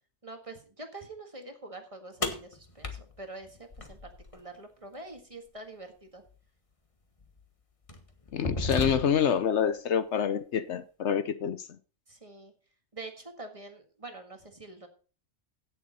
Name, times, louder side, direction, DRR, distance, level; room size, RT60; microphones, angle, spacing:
voice 1, 0.2-2.9 3.2-6.2 12.1-12.5 12.9-14.9, right 2 dB, 25° right, 1.7 m, -45 dB
sound 1, 2.2-4.4 6.3-6.4 7.2-7.4 7.9-9.4, left 2 dB, 25° left, 1.4 m, -35 dB
voice 2, 8.3-11.6, left 8 dB, 65° left, 1.0 m, -27 dB
16.0 x 6.9 x 4.1 m
omnidirectional pair, 1.3 m